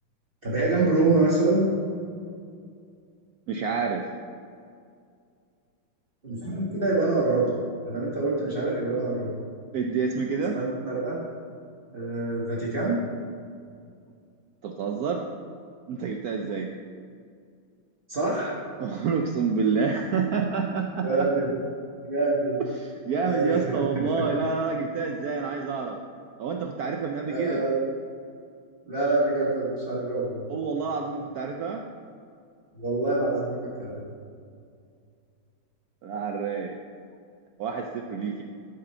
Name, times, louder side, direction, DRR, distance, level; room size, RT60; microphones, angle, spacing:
voice 1, 0.4-1.6 6.2-7.4 7.8-9.3 10.5-11.2 11.9-13.0 18.1-18.5 21.0-21.5 22.1-22.6 23.2-24.2 27.2-27.7 28.9-30.4 32.7-34.0, right 2 dB, 30° right, -7 dB, 1.6 m, -25 dB
voice 2, 3.5-4.1 9.7-10.6 14.6-15.2 15.9-16.7 18.8-21.3 22.8-26.0 26.4-27.6 30.5-31.8 36.0-36.7 37.6-38.4, right 5 dB, 80° right, 2 dB, 0.8 m, -28 dB
12.5 x 5.3 x 4.3 m, 2.3 s
omnidirectional pair, 2.2 m